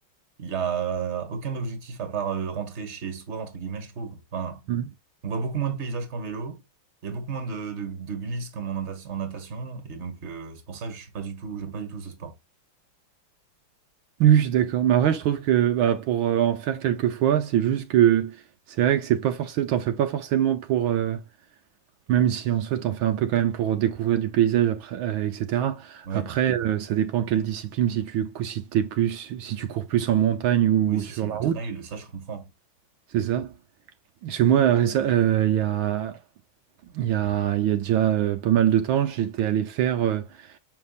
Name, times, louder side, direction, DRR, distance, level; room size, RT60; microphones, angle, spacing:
voice 1, 0.4-4.6 5.2-6.6 7.0-12.4 26.1-26.4 30.9-32.5, right 6 dB, 35° right, 1.7 m, -32 dB
voice 2, 14.2-18.4 18.7-21.2 22.1-31.6 33.1-33.5 34.2-36.2 36.9-40.5, right 10 dB, 75° right, 1.6 m, -23 dB
7.0 x 5.7 x 2.4 m
omnidirectional pair, 2.3 m